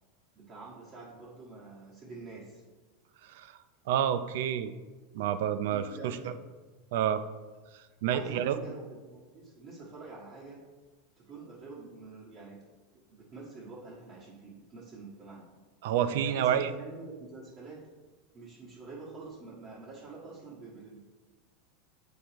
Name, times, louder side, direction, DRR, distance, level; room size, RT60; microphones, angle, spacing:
voice 1, 0.3-2.6 5.7-6.4 8.0-10.7 11.2-12.7 13.1-15.4 15.9-17.9 18.3-21.0, right 3 dB, 30° right, -7 dB, 1.5 m, -46 dB
voice 2, 3.9-4.7 5.1-6.3 6.9-7.2 8.0-8.6 15.8-16.7, right 9 dB, 70° right, 11 dB, 0.4 m, -28 dB
7.7 x 5.0 x 3.0 m, 1.3 s
supercardioid pair, 140°, 0 cm